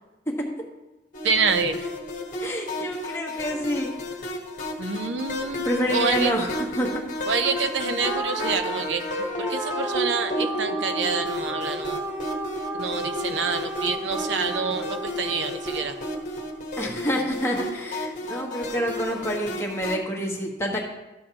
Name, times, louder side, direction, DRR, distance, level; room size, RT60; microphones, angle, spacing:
sound 1, 1.1-20.0, left 1 dB, 45° left, 1.2 m, -32 dB
voice 1, 1.2-1.8 4.8-6.3 7.3-12.0 12.7-16.0, right 5 dB, 90° right, 8 dB, 0.7 m, -27 dB
voice 2, 2.4-3.9 5.6-6.5 6.8-7.0 16.8-20.8, equal, 15° left, -2 dB, 1.4 m, -27 dB
sound 2, 8.0-16.6, right 1 dB, 15° right, 0.6 m, -34 dB
12.5 x 7.6 x 2.9 m, 1.0 s
head